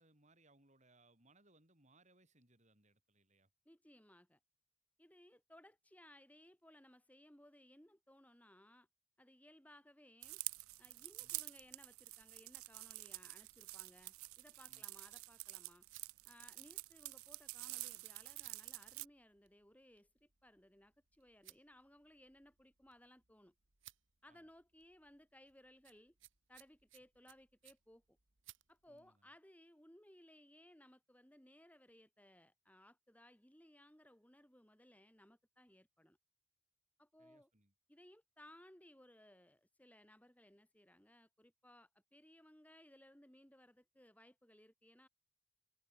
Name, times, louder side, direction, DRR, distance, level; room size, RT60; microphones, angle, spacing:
voice 1, 0.0-3.5 11.2-11.3 14.7-14.9 24.3-24.5 28.9-29.3 37.2-37.7, right 2 dB, 35° right, 6.1 m, -70 dB
voice 2, 3.7-4.4 5.0-8.9 9.2-10.4 10.8-15.9 16.2-23.5 24.2-26.2 26.5-28.2 28.7-36.2 37.0-37.5 37.9-45.1, left 1 dB, 5° left, 2.4 m, -63 dB
sound 1, 10.2-19.1, right 22 dB, 80° right, 0.5 m, -48 dB
sound 2, 13.3-29.1, right 15 dB, 60° right, 2.0 m, -67 dB
head